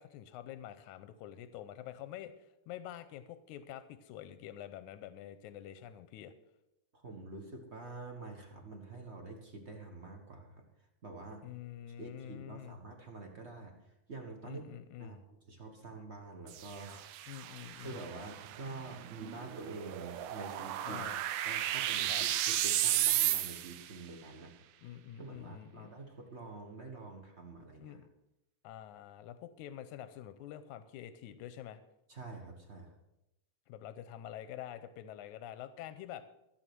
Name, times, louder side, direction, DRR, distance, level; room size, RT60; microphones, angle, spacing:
voice 1, 0.0-2.3 2.7-6.3 11.4-12.7 14.4-15.2 17.3-18.0 20.9-21.2 22.1-22.2 24.8-25.9 27.8-28.1 28.6-31.8 33.7-36.2, left 11 dB, 90° left, 11 dB, 2.1 m, -47 dB
voice 2, 6.9-10.6 11.0-11.4 12.0-14.6 15.0-17.3 17.8-21.0 21.4-24.6 25.2-28.0 32.1-32.9, right 3 dB, 50° right, 3 dB, 0.8 m, -47 dB
sound 1, 16.5-23.9, right 12 dB, 90° right, 2.1 m, -34 dB
14.0 x 7.8 x 6.0 m, 0.89 s
omnidirectional pair, 3.4 m